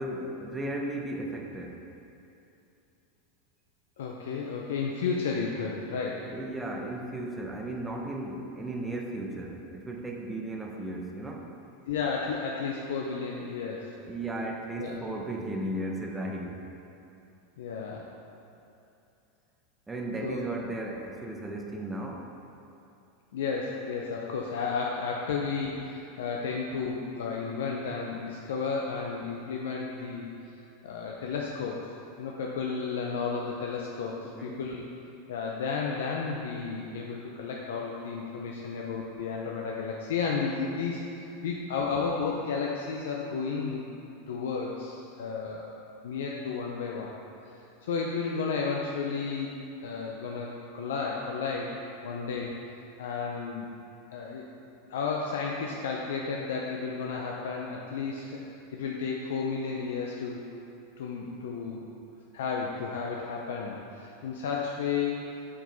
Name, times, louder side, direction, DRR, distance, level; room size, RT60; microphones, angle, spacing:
voice 1, 0.0-1.9 6.0-11.5 14.1-16.7 19.9-22.4 34.2-34.6, right 1 dB, 10° right, 1 dB, 0.7 m, -35 dB
voice 2, 4.0-6.3 11.9-13.9 14.8-15.0 17.6-18.1 20.2-20.4 23.3-30.3 30.8-31.8 32.2-34.8 35.3-43.9 44.3-45.7 46.0-47.1 47.8-49.5 49.8-51.7 52.0-52.5 53.0-53.7 54.1-54.5 54.9-58.4 58.7-60.4 61.0-61.9 62.3-65.5, left 5 dB, 80° left, -1 dB, 0.5 m, -32 dB
6.2 x 4.6 x 3.9 m, 2.8 s
hypercardioid pair, 115°, 0 cm